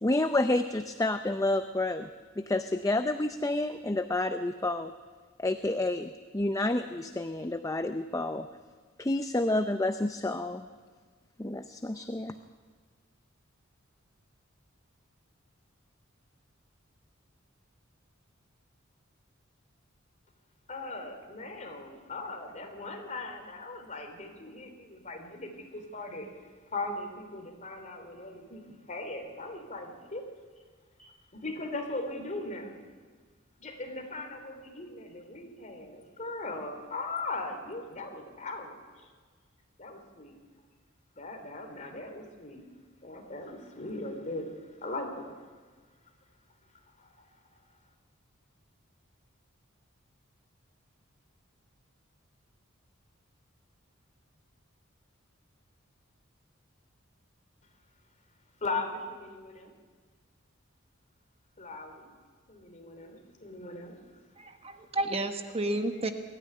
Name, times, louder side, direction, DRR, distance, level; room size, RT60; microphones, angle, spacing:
voice 1, 0.0-2.1 2.4-4.9 5.4-8.5 9.0-10.7 11.4-12.3, left 2 dB, 15° left, 9 dB, 0.6 m, -29 dB
voice 2, 20.7-26.3 26.7-30.2 31.4-32.8 33.6-39.1 39.8-40.3 41.2-42.6 43.0-44.5 44.8-45.4 47.0-47.1 58.6-59.7 61.6-62.1 62.5-64.0, left 2 dB, 35° left, 4 dB, 3.4 m, -39 dB
voice 3, 64.4-66.1, right 2 dB, 30° right, 7 dB, 1.2 m, -31 dB
21.5 x 13.5 x 9.8 m, 1.5 s
head